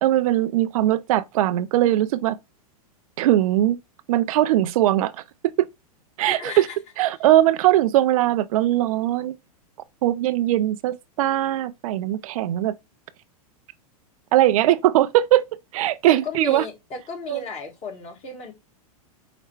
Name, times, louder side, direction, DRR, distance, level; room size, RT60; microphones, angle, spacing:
voice 1, 0.0-2.4 3.2-3.8 4.1-5.1 5.6-5.7 6.2-6.7 7.0-9.3 10.0-12.7 14.3-15.4 15.7-16.6 17.3-17.4, right 14 dB, 65° right, 0.5 m, -20 dB
voice 2, 6.2-6.7 16.1-18.5, left 3 dB, 35° left, 1.5 m, -34 dB
4.9 x 2.1 x 4.4 m
hypercardioid pair, 110°, 19 cm